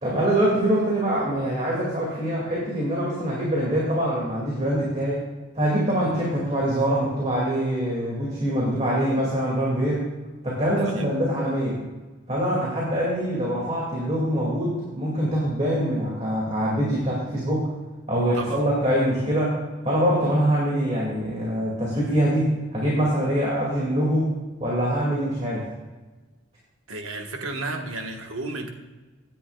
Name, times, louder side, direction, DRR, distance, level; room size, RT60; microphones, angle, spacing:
voice 1, 0.0-5.2 5.5-10.1 10.4-11.8 12.3-17.7 18.1-19.6 19.8-24.3 24.6-25.7, right 1 dB, 30° right, -5 dB, 2.3 m, -24 dB
voice 2, 10.8-11.1 18.3-18.6 26.9-28.7, right 2 dB, 85° right, 3 dB, 1.5 m, -32 dB
16.5 x 10.0 x 2.4 m, 1.2 s
head